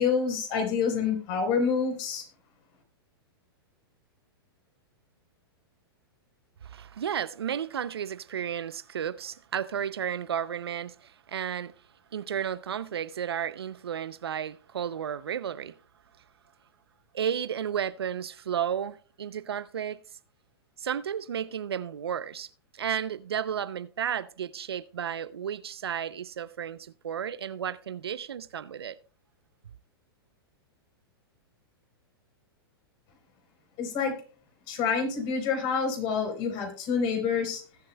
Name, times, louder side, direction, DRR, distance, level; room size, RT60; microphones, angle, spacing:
voice 1, 0.0-2.3 33.8-34.1 34.7-37.6, left 6 dB, 45° left, 3.9 m, -27 dB
voice 2, 6.6-11.7 12.1-15.7 17.1-20.0 20.8-29.0, right 8 dB, 90° right, 0.5 m, -33 dB
20.0 x 7.5 x 2.2 m
hypercardioid pair, 120°, 13 cm